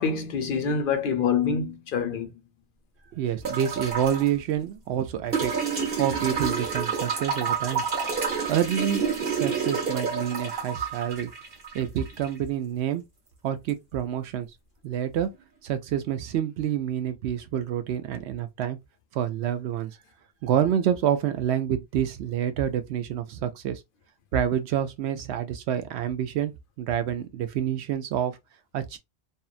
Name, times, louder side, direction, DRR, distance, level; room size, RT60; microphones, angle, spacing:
voice 1, 0.0-2.3, left 6 dB, 60° left, 0.7 m, -26 dB
voice 2, 3.1-5.6 5.9-7.8 8.5-11.3 11.7-13.0 13.4-14.5 14.8-15.3 15.6-18.8 19.1-19.9 20.4-23.8 24.3-26.5 26.8-28.4 28.7-29.0, right 10 dB, 85° right, 0.9 m, -27 dB
sound 1, 3.4-4.3 5.3-12.3 13.7-13.8, right 6 dB, 65° right, 1.3 m, -29 dB
2.7 x 2.1 x 2.4 m
omnidirectional pair, 1.1 m